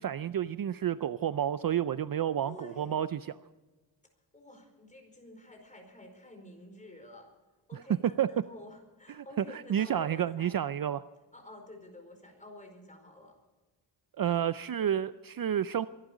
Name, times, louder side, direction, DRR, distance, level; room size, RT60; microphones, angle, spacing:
voice 1, 0.0-3.2 8.2-8.3 9.1-11.0 14.2-15.9, right 10 dB, 50° right, 14 dB, 0.5 m, -30 dB
voice 2, 2.4-3.0 4.3-7.3 7.7-10.6 11.3-13.3, left 1 dB, 15° left, 3 dB, 4.7 m, -50 dB
23.0 x 12.0 x 5.0 m, 1.2 s
wide cardioid pair, 115°, 44 cm